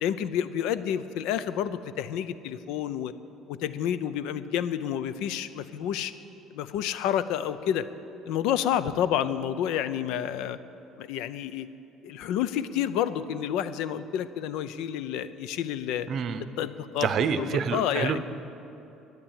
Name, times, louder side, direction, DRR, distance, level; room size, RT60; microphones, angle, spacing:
voice 1, 0.0-3.1 3.5-6.1 6.5-7.9 8.3-10.6 11.0-11.7 12.0-16.1 16.6-17.1 17.4-18.2, left 10 dB, 70° left, 14 dB, 0.6 m, -29 dB
voice 2, 16.1-16.4 17.0-18.2, right 7 dB, 40° right, 11 dB, 0.7 m, -27 dB
12.0 x 9.7 x 8.9 m, 2.9 s
cardioid pair, 170°, 0 cm